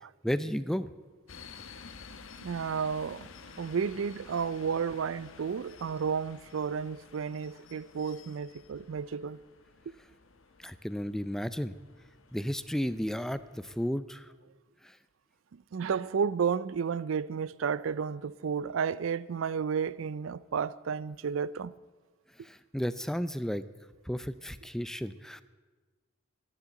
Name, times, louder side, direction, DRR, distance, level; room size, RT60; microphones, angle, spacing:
voice 1, 0.2-0.9 10.6-11.7 12.3-14.3 14.8-14.9 22.4-23.6 24.1-25.4, equal, ahead, 0.4 m, -33 dB
sound 1, 1.3-13.9, left 5 dB, 85° left, 1.1 m, -52 dB
voice 2, 2.4-3.3 3.6-9.4 9.9-10.0 15.5-21.7, right 6 dB, 75° right, 0.4 m, -32 dB
sound 2, 3.4-6.3, left 1 dB, 55° right, 2.5 m, -59 dB
12.5 x 10.0 x 8.2 m
head